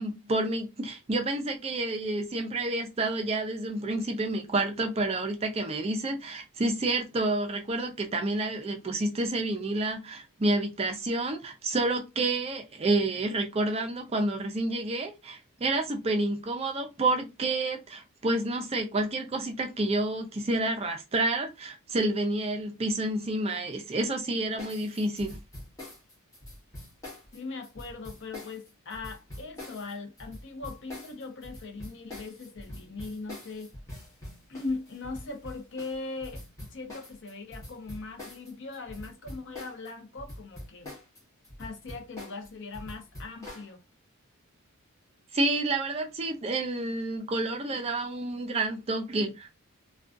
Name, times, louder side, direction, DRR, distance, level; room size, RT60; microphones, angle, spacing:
voice 1, 0.0-25.4 45.3-49.6, right 2 dB, 25° right, 0.4 m, -29 dB
sound 1, 24.6-39.9 40.2-43.7, left 1 dB, 15° left, 0.8 m, -44 dB
voice 2, 27.3-33.7 34.5-36.4 36.7-41.0 41.6-43.8, left 3 dB, 55° left, 0.6 m, -39 dB
2.4 x 2.2 x 2.5 m
head